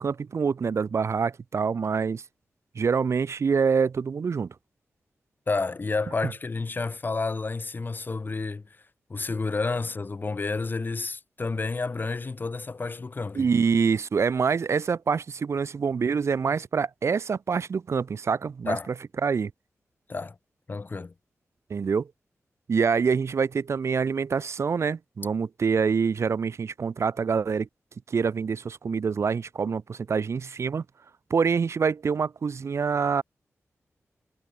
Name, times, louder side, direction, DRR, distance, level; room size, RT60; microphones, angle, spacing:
voice 1, 0.0-2.2 2.8-4.5 13.3-18.8 19.2-19.5 21.7-22.1 22.7-27.7 28.1-30.8 31.3-33.2, right 5 dB, 65° right, 2.4 m, -26 dB
voice 2, 5.5-8.6 9.1-13.5 18.6-18.9 20.1-20.4 20.7-21.1, left 3 dB, 40° left, 4.0 m, -30 dB
wide cardioid pair, 105°, 5 cm